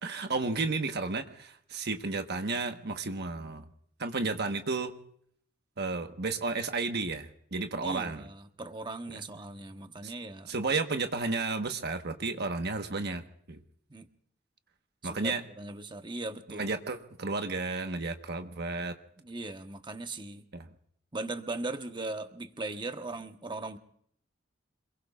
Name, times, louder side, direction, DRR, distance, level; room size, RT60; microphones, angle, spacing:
voice 1, 0.0-3.6 4.0-4.9 5.8-8.3 10.0-10.1 10.5-13.6 15.0-15.4 16.5-18.9 20.5-20.7, right 3 dB, 55° right, 6 dB, 1.2 m, -32 dB
voice 2, 7.8-10.5 13.9-14.1 15.0-16.7 19.2-20.4 21.1-23.8, right 2 dB, 25° right, 7 dB, 1.1 m, -39 dB
27.5 x 21.5 x 2.4 m, 0.66 s
head